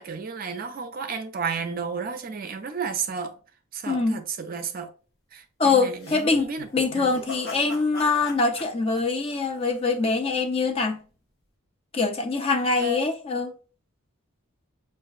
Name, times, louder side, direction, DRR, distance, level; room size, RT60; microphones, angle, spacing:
voice 1, 0.0-3.3 3.7-4.9 5.3-6.7 6.9-7.1 12.8-13.0, right 5 dB, 40° right, 0.4 m, -32 dB
voice 2, 3.9-4.2 5.6-11.0 11.9-13.5, left 4 dB, 25° left, 0.4 m, -24 dB
sound 1, 6.0-10.1, left 2 dB, 45° left, 0.8 m, -41 dB
5.5 x 2.5 x 2.3 m
head